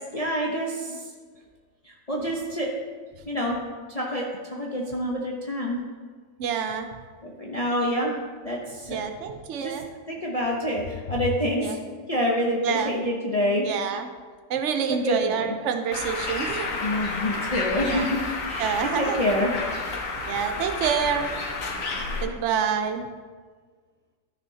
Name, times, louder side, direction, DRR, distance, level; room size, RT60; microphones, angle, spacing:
voice 1, 0.1-1.1 1.8-2.7 3.3-3.6 3.9-5.8 7.2-8.2 8.4-9.0 9.6-9.8 10.1-11.8 12.1-13.7 14.9-15.5 16.4-19.5 21.9-22.3, equal, 30° left, -3 dB, 0.9 m, -27 dB
voice 2, 6.4-6.9 8.9-9.8 11.6-11.8 12.6-12.9 13.6-14.1 14.5-16.7 17.8-18.1 18.6-19.2 20.3-21.3 22.2-23.1, right 7 dB, 60° right, 6 dB, 1.0 m, -27 dB
Bird, 15.9-22.2, left 3 dB, 70° left, 1.5 m, -31 dB
14.0 x 6.3 x 2.8 m, 1.5 s
omnidirectional pair, 1.5 m